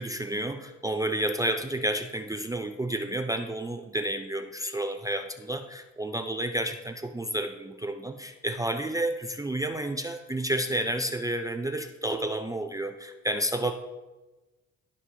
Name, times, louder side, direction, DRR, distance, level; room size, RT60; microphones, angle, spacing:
voice 1, 0.0-13.7, right 1 dB, 10° right, 5 dB, 0.4 m, -30 dB
14.0 x 4.7 x 2.8 m, 1.1 s
cardioid pair, 90°, 30 cm